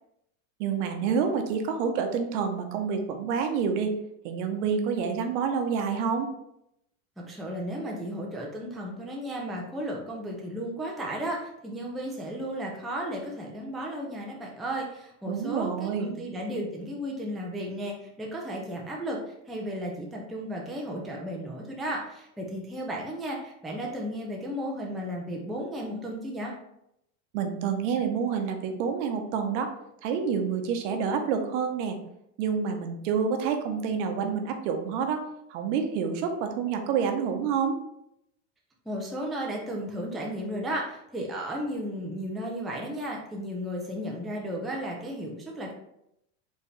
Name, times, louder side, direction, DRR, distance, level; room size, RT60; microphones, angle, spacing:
voice 1, 0.6-3.9 4.2-6.3 15.3-16.1 27.3-29.7 30.0-32.0 32.4-37.8, right 6 dB, 65° right, 5 dB, 0.9 m, -28 dB
voice 2, 7.2-19.2 19.5-26.5 38.9-45.7, equal, ahead, -2 dB, 0.4 m, -34 dB
4.6 x 3.3 x 3.2 m, 0.79 s
supercardioid pair, 145°, 38 cm